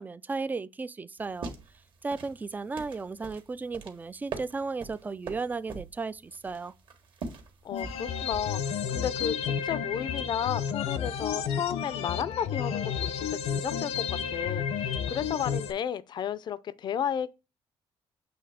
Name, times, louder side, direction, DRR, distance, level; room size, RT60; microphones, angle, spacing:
voice 1, 0.0-1.5 2.0-6.7, right 4 dB, 15° right, 0.3 m, -35 dB
sound 1, 1.2-8.7, right 4 dB, 50° right, 1.5 m, -43 dB
voice 2, 7.6-17.3, left 8 dB, 45° left, 0.5 m, -33 dB
sound 2, 7.7-15.7, left 7 dB, 80° left, 0.9 m, -31 dB
7.8 x 3.1 x 4.9 m
cardioid pair, 135°, 11 cm